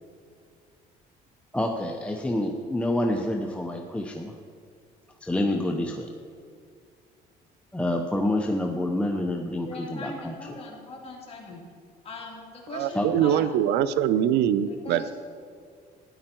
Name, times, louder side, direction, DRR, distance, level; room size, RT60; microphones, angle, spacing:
voice 1, 1.5-4.3 5.2-6.1 7.7-10.4 12.9-13.1, left 1 dB, 5° left, 2 dB, 0.8 m, -27 dB
voice 2, 9.6-11.6 12.0-13.5 14.7-15.1, left 4 dB, 35° left, -2 dB, 3.1 m, -39 dB
voice 3, 12.7-15.1, right 10 dB, 85° right, 15 dB, 0.5 m, -23 dB
13.0 x 10.0 x 4.5 m, 2.2 s
cardioid pair, 110°, 17 cm